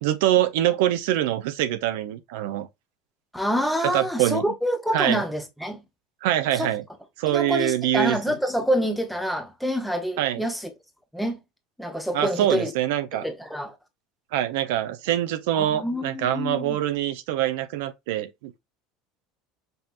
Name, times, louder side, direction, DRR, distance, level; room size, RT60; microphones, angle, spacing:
voice 1, 0.0-2.7 3.9-4.4 4.9-5.2 6.2-6.8 7.2-8.2 10.2-10.4 12.1-13.3 14.3-18.6, right 12 dB, 80° right, 0.6 m, -24 dB
voice 2, 3.3-5.8 6.6-6.7 7.3-10.7 11.1-11.4 11.8-12.7 13.1-13.7 15.5-16.8, equal, ahead, 0.7 m, -27 dB
5.4 x 2.8 x 2.4 m
cardioid pair, 160°, 0 cm